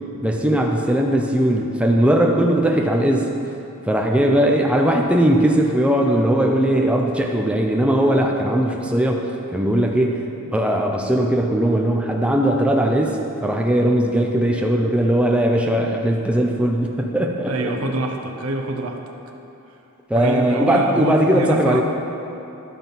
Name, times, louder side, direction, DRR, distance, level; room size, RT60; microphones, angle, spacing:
voice 1, 0.2-3.3 3.8-9.2 9.5-17.7 20.1-21.8, right 1 dB, 5° right, 1 dB, 0.5 m, -19 dB
voice 2, 17.4-19.0 20.1-21.8, right 1 dB, 70° right, 4 dB, 0.9 m, -25 dB
12.0 x 5.5 x 5.7 m, 2.9 s
head